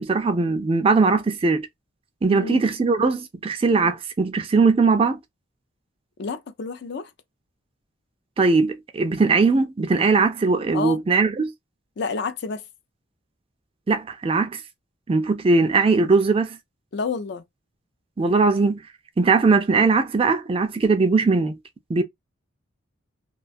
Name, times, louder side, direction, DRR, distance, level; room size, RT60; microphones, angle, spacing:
voice 1, 0.0-1.7 2.2-5.2 8.4-11.5 13.9-14.6 15.1-16.6 18.2-18.8 19.2-21.6 21.9-22.0, right 4 dB, 25° right, 0.3 m, -20 dB
voice 2, 2.3-2.6 6.2-7.1 10.7-11.0 12.0-12.6 16.9-17.4, left 4 dB, 55° left, 0.4 m, -29 dB
2.3 x 2.3 x 2.5 m
head